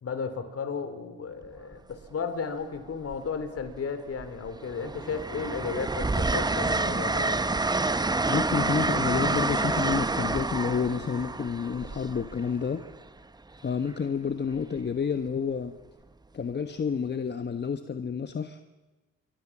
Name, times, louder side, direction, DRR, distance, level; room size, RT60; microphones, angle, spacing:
voice 1, 0.0-7.4, left 5 dB, 50° left, 10 dB, 3.7 m, -34 dB
Train, 1.4-1.7 3.0-3.8 4.2-12.9 14.5-14.8, right 3 dB, 15° right, 0.9 m, -28 dB
voice 2, 8.3-12.8 13.6-15.7 16.3-18.6, left 6 dB, 35° left, 9 dB, 1.3 m, -29 dB
27.5 x 23.5 x 7.4 m, 1.2 s
cardioid pair, 90°, 30 cm